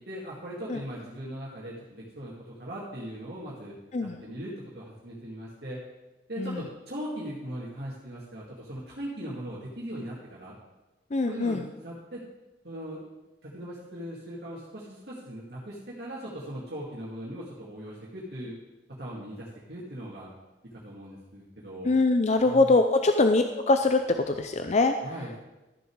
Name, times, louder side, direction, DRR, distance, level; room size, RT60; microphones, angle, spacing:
voice 1, 0.0-3.8 4.0-5.8 6.3-10.5 11.3-12.2 12.6-13.0 13.4-18.6 18.9-20.3 20.7-21.9 22.4-22.7 25.0-25.3, equal, 65° right, -6 dB, 2.3 m, -39 dB
voice 2, 11.1-11.7 21.8-25.0, left 3 dB, 40° left, 7 dB, 0.5 m, -23 dB
13.5 x 6.8 x 4.7 m, 1.0 s
head